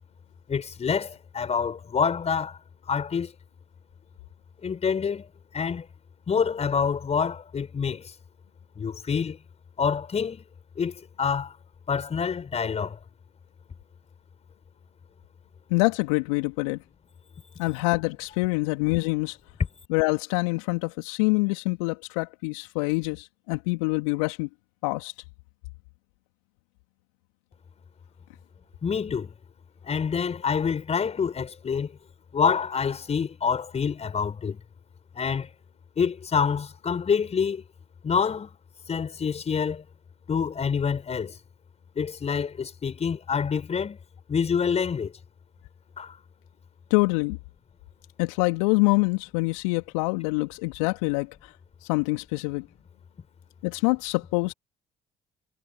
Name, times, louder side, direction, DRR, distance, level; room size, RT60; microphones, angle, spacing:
voice 1, 0.5-2.6 2.8-3.3 4.6-5.3 5.5-5.9 6.3-8.1 8.8-9.4 9.8-10.4 10.8-11.6 11.9-13.0 28.8-29.3 29.8-32.0 32.3-34.6 35.1-35.5 36.0-37.6 38.0-38.5 38.9-39.8 40.3-41.4 42.0-44.0 44.3-45.1 46.0-46.2, left 6 dB, 40° left, 5.7 m, -27 dB
voice 2, 15.7-16.8 17.6-19.4 19.9-24.5 24.8-25.1 46.9-47.4 48.2-51.5 51.8-52.7 53.6-54.5, left 28 dB, 70° left, 2.2 m, -25 dB
figure-of-eight pair, 50°, 17 cm